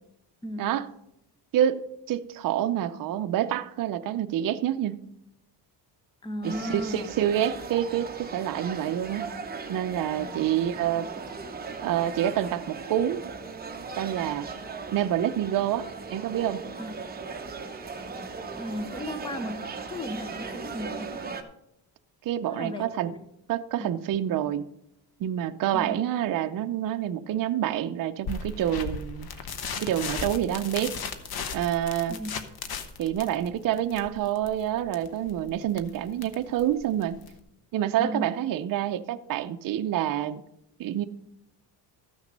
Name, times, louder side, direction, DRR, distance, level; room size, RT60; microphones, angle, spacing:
voice 1, 1.5-5.0 6.4-9.3 9.7-11.1 11.8-13.2 14.0-14.5 14.9-16.6 22.2-23.1 23.5-24.7 25.2-29.3 29.8-31.0 31.5-32.2 33.0-37.2 37.7-40.4 40.8-41.0, right 11 dB, 50° right, 8 dB, 0.6 m, -27 dB
voice 2, 6.2-7.1 10.2-10.4 16.8-17.0 18.5-19.6 19.9-21.1 22.5-23.2 23.8-23.9 25.7-26.0 32.1-32.3 38.0-38.3, equal, 10° left, 9 dB, 0.8 m, -35 dB
sound 1, 6.4-21.4, right 4 dB, 20° right, 0.9 m, -38 dB
sound 2, 28.2-37.4, left 5 dB, 60° left, 1.0 m, -37 dB
13.5 x 6.3 x 5.2 m, 0.78 s
cardioid pair, 135°, 43 cm